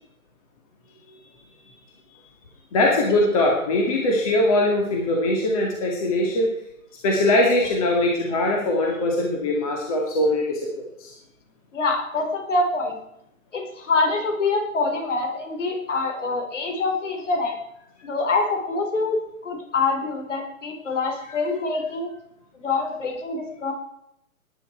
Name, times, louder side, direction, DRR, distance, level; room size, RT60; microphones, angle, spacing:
voice 1, 2.7-6.5 7.0-11.1, left 1 dB, 25° left, 0 dB, 2.3 m, -21 dB
voice 2, 11.7-13.0 13.5-17.6 18.0-22.1 22.5-23.7, left 3 dB, 55° left, 3 dB, 4.7 m, -25 dB
18.5 x 10.5 x 4.6 m, 0.78 s
hypercardioid pair, 170°, 43 cm